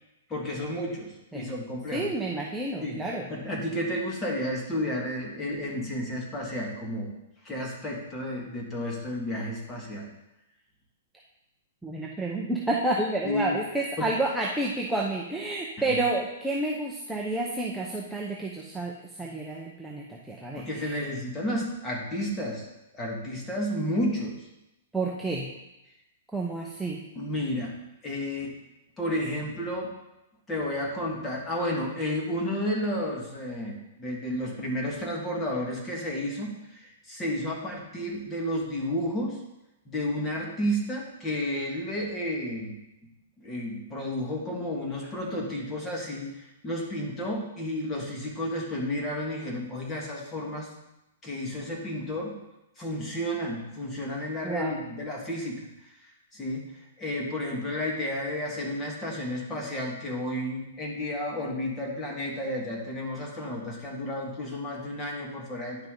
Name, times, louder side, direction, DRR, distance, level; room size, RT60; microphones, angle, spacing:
voice 1, 0.3-2.1 2.8-7.1 7.4-10.1 13.2-13.5 14.0-14.1 15.9-16.0 20.5-22.7 22.9-24.5 27.2-27.8 28.0-28.5 29.0-29.9 30.5-39.4 39.9-42.8 43.4-50.7 51.2-52.4 52.8-55.7 56.3-56.6 57.0-65.9, left 1 dB, 15° left, -1 dB, 1.9 m, -32 dB
voice 2, 1.9-3.3 11.8-21.0 24.9-25.5 26.3-27.0 54.4-54.8, right 2 dB, ahead, -3 dB, 0.8 m, -30 dB
10.0 x 5.8 x 3.8 m, 0.94 s
hypercardioid pair, 150°, 0 cm